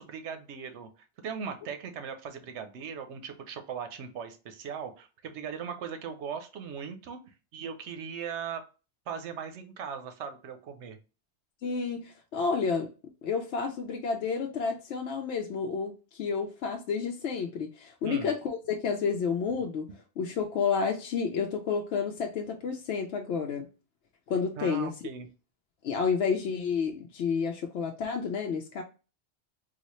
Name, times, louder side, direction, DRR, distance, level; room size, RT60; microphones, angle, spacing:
voice 1, 0.0-7.2 7.5-8.6 9.1-11.0 18.0-18.3 24.6-25.3, right 7 dB, 75° right, 7 dB, 0.9 m, -39 dB
voice 2, 11.6-12.9 13.2-19.9 20.2-23.7 24.3-24.9 25.8-28.8, left 5 dB, 75° left, 1 dB, 0.8 m, -30 dB
4.0 x 2.3 x 3.0 m, 0.33 s
omnidirectional pair, 1.2 m